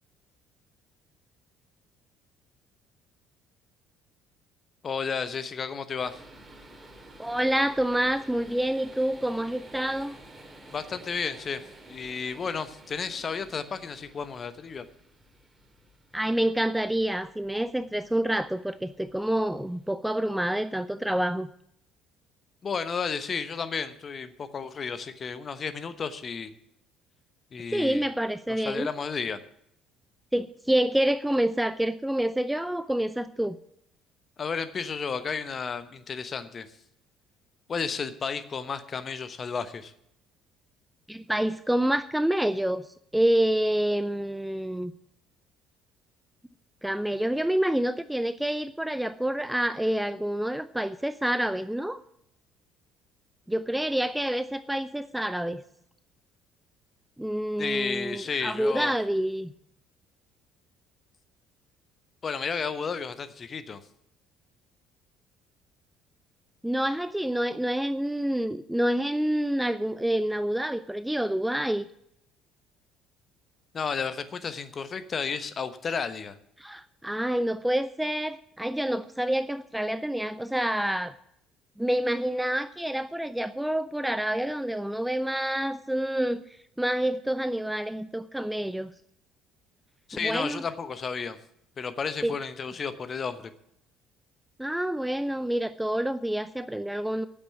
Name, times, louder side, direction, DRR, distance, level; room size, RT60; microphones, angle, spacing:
voice 1, 4.8-6.2 10.7-11.6 11.9-14.8 22.6-26.5 27.5-28.0 28.6-29.4 34.4-36.7 37.7-39.9 57.6-58.9 62.2-63.8 73.7-76.4 90.1-91.4 91.8-93.4, left 5 dB, 35° left, 11 dB, 1.0 m, -32 dB
sound 1, 6.0-19.9, right 1 dB, 20° right, 2.4 m, -51 dB
voice 2, 7.2-10.2 16.1-21.5 27.7-28.9 30.3-33.6 41.1-42.9 43.1-44.9 46.8-52.0 53.5-55.6 57.2-59.5 66.6-71.8 76.6-81.2 81.8-86.4 86.8-88.9 90.1-90.6 92.2-92.3 94.6-97.3, right 1 dB, 5° right, 13 dB, 0.5 m, -27 dB
9.4 x 8.0 x 9.2 m, 0.74 s
figure-of-eight pair, 55°, 0 cm